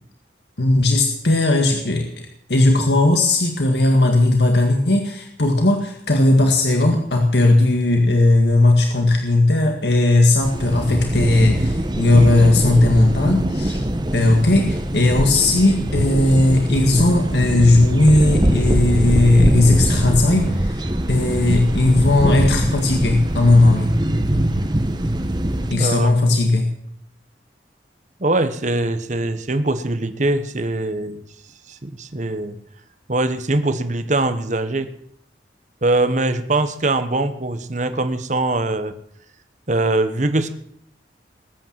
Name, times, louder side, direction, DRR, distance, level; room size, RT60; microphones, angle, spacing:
voice 1, 0.6-13.8 14.1-24.0 25.7-26.7, left 2 dB, 70° left, 3 dB, 2.0 m, -17 dB
sound 1, 10.4-25.7, right 1 dB, 25° right, 1.1 m, -22 dB
voice 2, 25.7-26.1 28.2-31.2 31.7-32.6 33.1-34.9 35.8-39.0 39.7-40.5, right 2 dB, 40° right, 10 dB, 1.2 m, -22 dB
20.0 x 9.0 x 7.6 m, 0.68 s
head